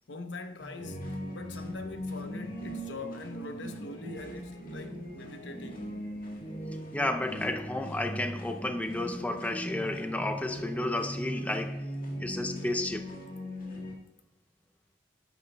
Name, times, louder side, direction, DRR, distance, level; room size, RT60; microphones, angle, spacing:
voice 1, 0.0-6.0, left 3 dB, 85° left, 0.8 m, -43 dB
sound 1, 0.6-14.0, equal, 50° left, 1.8 m, -39 dB
voice 2, 6.9-11.9 12.2-13.1, left 1 dB, 10° left, 0.5 m, -32 dB
12.0 x 9.4 x 2.2 m
head